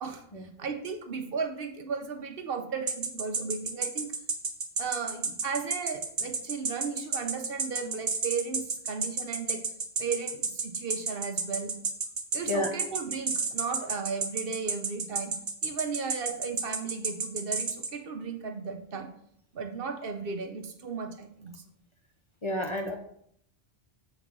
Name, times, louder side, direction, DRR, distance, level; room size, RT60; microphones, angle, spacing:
voice 1, 0.0-4.1 4.8-9.6 10.0-11.7 12.3-15.3 15.6-19.1 19.5-21.6, right 5 dB, 65° right, 5 dB, 1.0 m, -35 dB
sound 1, 2.9-17.9, right 4 dB, 85° right, 1.2 m, -30 dB
voice 2, 22.4-23.0, left 1 dB, 35° left, 3 dB, 0.6 m, -30 dB
7.3 x 3.9 x 5.3 m, 0.70 s
omnidirectional pair, 1.1 m